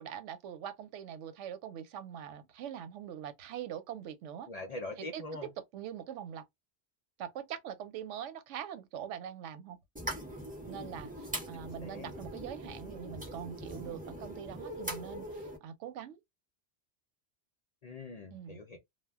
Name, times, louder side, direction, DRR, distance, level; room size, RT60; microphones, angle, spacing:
voice 1, 0.0-4.5 5.1-6.4 7.2-9.8 10.7-16.2 18.3-18.6, right 9 dB, 85° right, 0.9 m, -43 dB
voice 2, 4.5-5.5 11.5-12.1 17.8-18.8, left 2 dB, 50° left, 0.5 m, -43 dB
sound 1, 10.0-15.6, right 1 dB, 10° right, 0.7 m, -42 dB
2.2 x 2.1 x 3.4 m
omnidirectional pair, 1.2 m